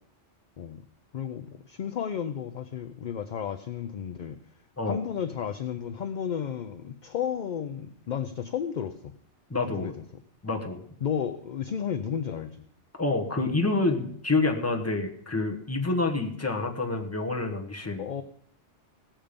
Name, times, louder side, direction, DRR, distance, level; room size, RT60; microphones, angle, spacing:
voice 1, 1.1-4.4 4.9-9.0 9.8-9.9 11.0-12.7 18.0-18.2, left 8 dB, 55° left, 10 dB, 0.6 m, -32 dB
voice 2, 9.5-9.9 10.4-10.8 13.0-18.1, left 3 dB, 15° left, 2 dB, 1.2 m, -28 dB
17.5 x 7.3 x 5.1 m, 0.64 s
omnidirectional pair, 1.2 m